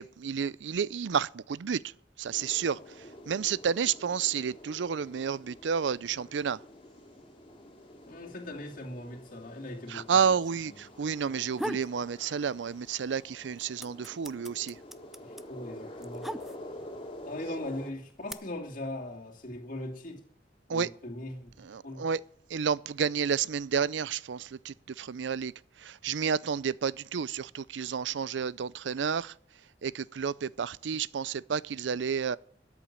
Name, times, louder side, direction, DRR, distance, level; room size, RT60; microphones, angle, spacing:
voice 1, 0.0-1.8 2.2-6.6 9.9-14.8 20.7-20.9 21.6-22.2 22.5-25.5 25.8-29.3 29.8-32.4, right 7 dB, 80° right, 0.5 m, -31 dB
sound 1, 2.3-17.9, left 1 dB, 30° left, 2.6 m, -48 dB
voice 2, 8.1-10.3 10.7-10.8 15.2-16.4 17.3-20.2 20.7-21.5 21.8-22.1, left 1 dB, 50° left, 2.5 m, -40 dB
sound 2, 11.3-12.0 12.4-13.1 13.3-16.9 17.7-18.3, equal, ahead, 0.5 m, -38 dB
13.0 x 7.2 x 8.7 m
head